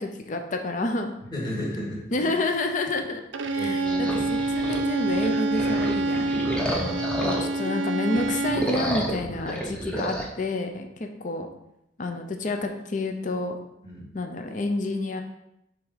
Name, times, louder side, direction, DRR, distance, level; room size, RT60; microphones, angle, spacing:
voice 1, 0.0-1.1 2.1-3.2 3.5-6.4 7.2-11.5 12.0-13.6 14.1-15.2, left 2 dB, 45° left, 5 dB, 0.6 m, -29 dB
voice 2, 1.3-2.3 3.5-4.1 6.6-7.0 13.8-14.1, left 1 dB, 25° left, -6 dB, 2.5 m, -34 dB
Bowed string instrument, 3.3-8.8, right 2 dB, 80° right, 0.5 m, -27 dB
sound 1, 3.9-7.7 8.1-10.3, right 1 dB, 5° left, 0.9 m, -31 dB
6.8 x 3.6 x 4.9 m, 0.82 s
head